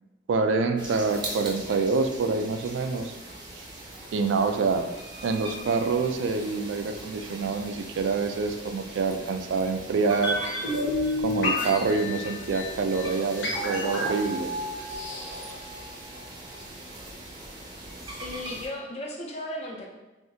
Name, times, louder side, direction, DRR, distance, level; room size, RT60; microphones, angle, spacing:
voice 1, 0.3-3.2 3.6-3.7 4.1-4.8 5.2-10.4 11.2-14.5, right 4 dB, 85° right, 7 dB, 0.3 m, -26 dB
sound 1, 0.8-18.7, right 2 dB, 25° right, 0.5 m, -41 dB
sound 2, 10.2-16.3 16.5-16.6, left 1 dB, 90° left, 0.9 m, -30 dB
voice 2, 18.0-19.9, left 1 dB, 35° left, 0 dB, 0.5 m, -36 dB
3.5 x 2.6 x 2.7 m, 1.1 s
head